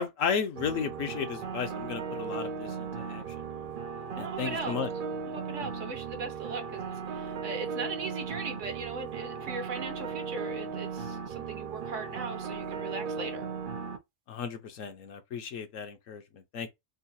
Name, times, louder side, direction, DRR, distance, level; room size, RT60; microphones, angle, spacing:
voice 1, 0.0-3.7 4.2-4.9 14.3-16.7, left 6 dB, 65° left, 1.0 m, -34 dB
sound 1, 0.6-14.0, right 5 dB, 85° right, 0.4 m, -37 dB
voice 2, 4.1-4.8 5.3-13.5, right 4 dB, 60° right, 1.1 m, -39 dB
3.8 x 2.4 x 2.6 m
omnidirectional pair, 1.6 m